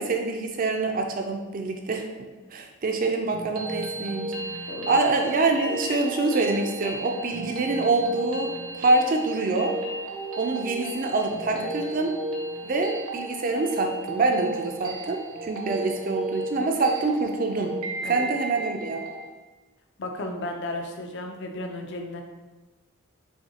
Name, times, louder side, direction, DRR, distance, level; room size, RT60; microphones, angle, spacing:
voice 1, 0.0-2.1 2.5-4.3 4.9-9.7 10.4-12.1 12.6-17.7 18.1-19.0, right 3 dB, 40° right, 3 dB, 0.4 m, -25 dB
sound 1, 3.3-19.3, right 2 dB, 80° right, 0.7 m, -34 dB
voice 2, 4.7-5.0 11.5-11.7 18.0-18.2 20.0-22.2, left 2 dB, 55° left, 4 dB, 0.5 m, -34 dB
5.6 x 2.7 x 2.8 m, 1.2 s
head